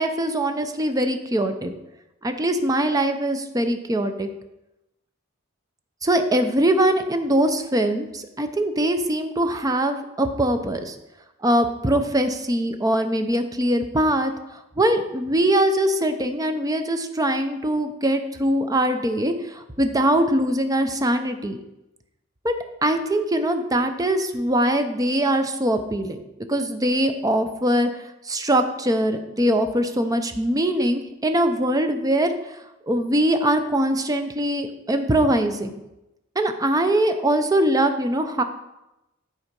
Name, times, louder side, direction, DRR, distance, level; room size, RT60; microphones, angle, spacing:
voice 1, 0.0-1.7 2.2-4.3 6.0-10.9 11.4-21.6 22.4-22.5 22.8-26.2 26.5-27.9 28.3-32.3 32.9-35.7 36.4-38.4, right 1 dB, 15° right, 7 dB, 0.6 m, -22 dB
9.0 x 4.2 x 5.2 m, 0.93 s
head